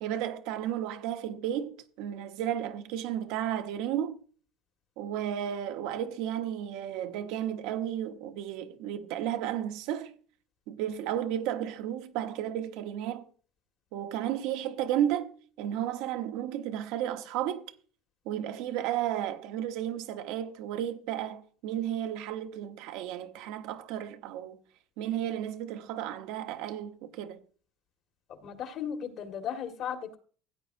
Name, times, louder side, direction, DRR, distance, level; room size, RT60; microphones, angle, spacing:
voice 1, 0.0-4.2 5.0-10.1 10.7-13.3 13.9-15.3 15.6-17.6 18.2-24.6 25.0-27.4, right 11 dB, 75° right, 1.1 m, -33 dB
voice 2, 28.3-30.2, left 8 dB, 55° left, 1.8 m, -36 dB
16.0 x 8.9 x 2.7 m
supercardioid pair, 105°, 0 cm